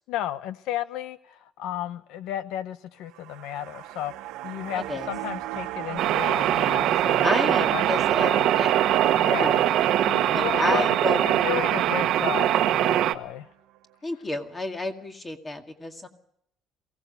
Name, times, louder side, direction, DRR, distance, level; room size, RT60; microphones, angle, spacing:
voice 1, 0.1-4.1 4.4-7.8 8.2-8.5 9.2-9.6 10.1-11.0 11.2-13.5, left 12 dB, 75° left, 13 dB, 0.9 m, -33 dB
sound 1, 3.0-13.4 13.8-13.9, right 14 dB, 85° right, 1.3 m, -36 dB
voice 2, 4.7-5.1 7.2-8.7 9.4-9.6 10.3-11.2 14.0-16.1, left 2 dB, 15° left, 5 dB, 2.1 m, -31 dB
sound 2, 6.0-13.1, right 11 dB, 55° right, 1.2 m, -22 dB
23.0 x 17.5 x 6.8 m, 0.71 s
cardioid pair, 170°, 0 cm